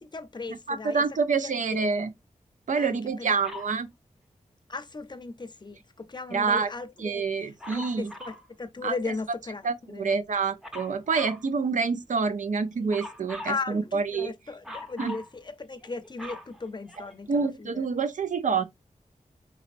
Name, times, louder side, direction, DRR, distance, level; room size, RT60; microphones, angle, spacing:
voice 1, 0.0-2.0 2.7-3.4 4.7-10.1 13.4-17.9, left 3 dB, 35° left, 0.6 m, -37 dB
voice 2, 0.7-2.1 2.7-3.9 6.3-6.7 7.0-8.1 8.8-8.9 9.6-14.3 15.0-15.2 17.3-18.6, right 5 dB, 75° right, 0.5 m, -27 dB
Dog, 3.4-3.8 7.6-8.5 10.6-11.4 12.9-13.6 14.6-15.3 15.8-17.3 18.1-18.2, left 2 dB, 5° right, 0.8 m, -41 dB
4.1 x 4.1 x 2.5 m
wide cardioid pair, 110°, 13 cm